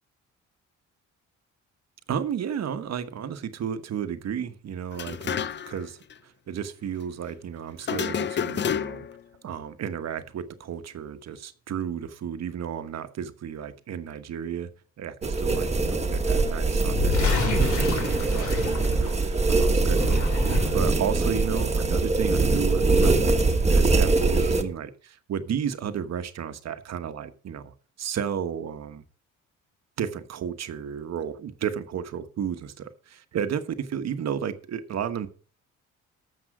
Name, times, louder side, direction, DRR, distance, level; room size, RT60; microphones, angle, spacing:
voice 1, 2.1-9.1 9.4-14.7 15.0-23.2 23.7-29.0 30.0-35.3, right 8 dB, 60° right, 1.2 m, -33 dB
sound 1, 4.9-5.8 6.1-6.2 7.8-9.2, left 8 dB, 40° left, 0.5 m, -29 dB
sound 2, 15.2-24.6, right 3 dB, 20° right, 1.4 m, -23 dB
sound 3, 16.8-19.4 19.8-21.0, left 5 dB, 75° left, 3.1 m, -30 dB
13.0 x 7.2 x 4.9 m
cardioid pair, 90°, 30 cm